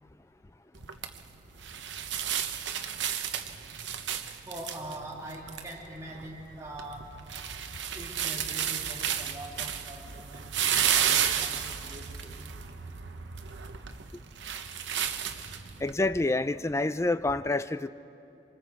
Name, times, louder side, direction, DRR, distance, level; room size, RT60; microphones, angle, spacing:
sound 1, 0.7-15.9, right 9 dB, 90° right, 0.9 m, -33 dB
voice 1, 4.5-7.1 7.9-12.4, right 1 dB, 15° right, -4 dB, 2.8 m, -43 dB
voice 2, 15.8-17.9, left 2 dB, 15° left, 13 dB, 0.4 m, -27 dB
26.5 x 24.5 x 4.7 m, 2.8 s
head